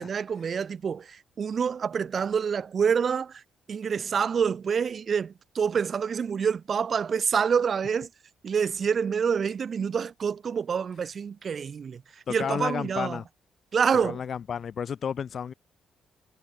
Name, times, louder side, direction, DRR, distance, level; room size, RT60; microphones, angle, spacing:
voice 1, 0.0-3.4 3.7-8.1 8.4-12.0 12.3-13.2 13.7-14.2, right 6 dB, 45° right, 0.9 m, -27 dB
voice 2, 12.3-13.3 14.0-15.5, left 7 dB, 50° left, 0.9 m, -32 dB
cardioid pair, 90°, 0 cm